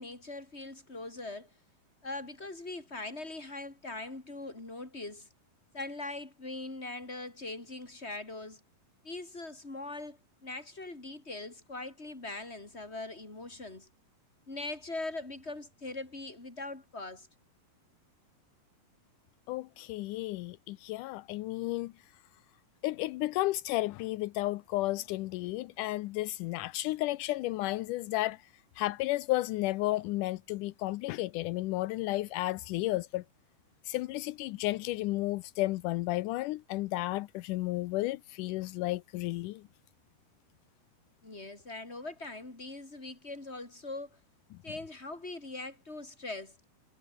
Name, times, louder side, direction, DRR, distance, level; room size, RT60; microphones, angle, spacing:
voice 1, 0.0-1.5 2.0-5.3 5.7-8.6 9.0-13.9 14.5-17.3 41.2-44.2 44.6-46.6, left 2 dB, 15° left, 5.1 m, -41 dB
voice 2, 19.5-21.9 22.8-28.4 28.8-33.2 33.9-39.6, left 18 dB, 85° left, 1.9 m, -33 dB
omnidirectional pair, 4.3 m